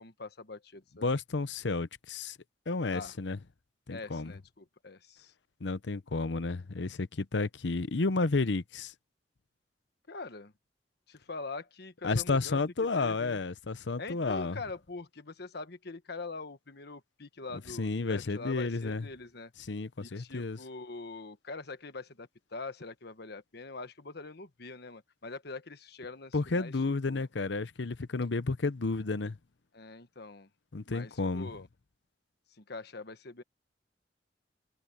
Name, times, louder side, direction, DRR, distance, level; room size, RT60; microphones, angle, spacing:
voice 1, 0.0-1.1 2.9-3.2 3.9-5.3 10.1-10.5 11.1-12.6 13.0-13.4 14.0-19.5 20.0-26.7 27.1-27.3 29.7-30.5 30.9-31.7 32.5-33.4, left 3 dB, 65° left, 1.3 m, -43 dB
voice 2, 1.0-2.4 2.7-3.4 3.9-4.3 5.6-8.9 12.0-14.6 17.7-19.1 19.6-20.6 26.3-29.4 30.7-31.5, left 3 dB, 80° left, 0.8 m, -31 dB
head